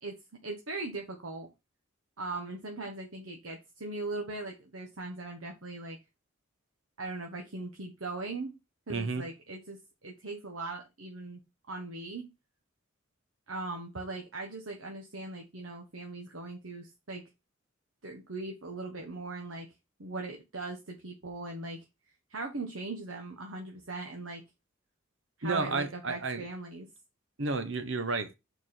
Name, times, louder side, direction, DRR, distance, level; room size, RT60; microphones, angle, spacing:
voice 1, 0.0-1.5 2.2-6.0 7.0-8.5 8.9-11.4 11.7-12.3 13.5-17.2 18.0-19.7 20.0-21.8 22.3-24.4 25.4-26.9, right 2 dB, 80° right, 1.3 m, -39 dB
voice 2, 8.9-9.2 25.4-26.5 27.4-28.3, right 3 dB, 65° right, 1.0 m, -32 dB
6.8 x 4.7 x 4.3 m
head